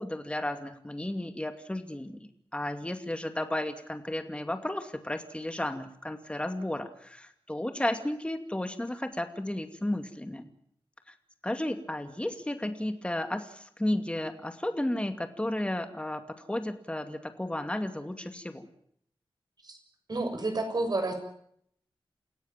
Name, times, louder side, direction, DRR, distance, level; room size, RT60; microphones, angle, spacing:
voice 1, 0.0-10.5 11.1-11.2 11.4-18.7, left 1 dB, 10° left, 8 dB, 2.4 m, -33 dB
voice 2, 20.1-21.1, right 2 dB, 45° right, 5 dB, 6.9 m, -30 dB
29.0 x 16.5 x 7.5 m, 0.68 s
wide cardioid pair, 105°, 9 cm